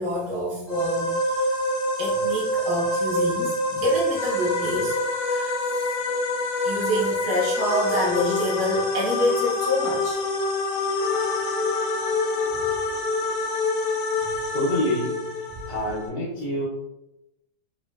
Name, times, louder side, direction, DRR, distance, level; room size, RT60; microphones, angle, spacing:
voice 1, 0.0-1.4 2.0-5.0 5.3-5.9 6.6-10.2, equal, 80° right, -5 dB, 1.5 m, -27 dB
sound 1, 0.7-16.1, left 2 dB, 70° left, 1.0 m, -26 dB
voice 2, 14.5-16.7, left 1 dB, 85° left, -6 dB, 1.4 m, -27 dB
4.2 x 2.1 x 2.2 m, 0.88 s
omnidirectional pair, 1.9 m